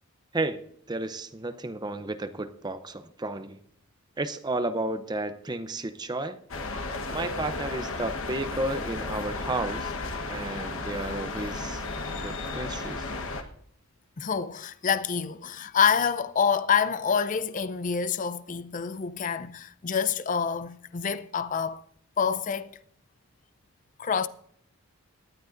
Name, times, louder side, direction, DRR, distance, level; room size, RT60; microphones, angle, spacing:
voice 1, 0.9-3.6 4.2-6.4 7.1-9.9 10.3-11.8 12.2-13.1, right 2 dB, 20° right, 0.6 m, -32 dB
sound 1, 6.5-13.4, left 3 dB, 65° left, 1.2 m, -34 dB
voice 2, 14.2-21.8 22.2-22.8 24.0-24.3, left 6 dB, 35° left, 0.5 m, -27 dB
18.5 x 12.0 x 2.6 m
head